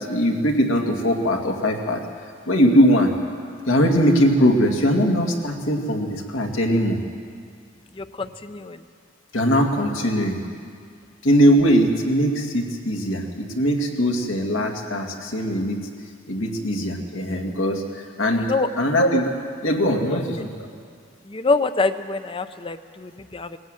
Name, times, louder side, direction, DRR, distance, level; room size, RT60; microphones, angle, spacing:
voice 1, 0.0-2.0 2.5-3.1 3.7-7.0 9.3-10.4 11.2-15.9 16.3-18.5 18.8-19.4 19.6-20.7, equal, 80° left, 2 dB, 2.4 m, -20 dB
voice 2, 8.0-8.8 18.4-18.7 21.3-23.6, left 3 dB, 25° left, 11 dB, 0.6 m, -25 dB
20.0 x 15.5 x 9.2 m, 2.1 s
head